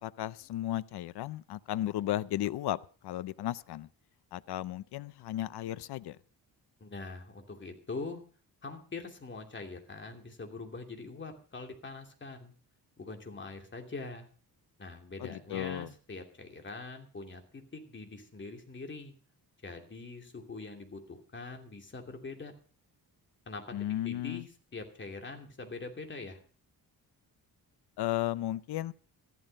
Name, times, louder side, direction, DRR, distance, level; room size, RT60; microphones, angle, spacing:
voice 1, 0.0-3.9 4.3-6.2 15.2-15.9 23.7-24.5 28.0-28.9, left 13 dB, 75° left, 0.6 m, -34 dB
voice 2, 6.8-8.2 8.6-12.5 13.0-14.3 14.8-19.1 19.6-22.5 23.5-23.6 24.0-24.4 24.7-26.4, left 3 dB, 30° left, 2.7 m, -43 dB
14.0 x 12.5 x 5.3 m
cardioid pair, 135°, 40 cm